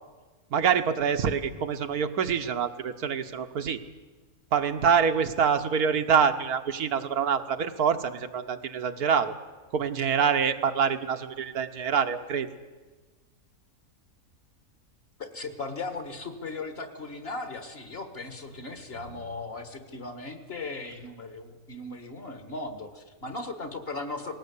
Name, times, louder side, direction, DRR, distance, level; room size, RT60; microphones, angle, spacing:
voice 1, 0.5-3.8 4.5-9.3 9.7-12.5, right 7 dB, 85° right, 7 dB, 1.6 m, -25 dB
voice 2, 15.2-24.4, left 3 dB, 40° left, 8 dB, 1.9 m, -37 dB
19.5 x 17.5 x 8.4 m, 1.3 s
omnidirectional pair, 1.6 m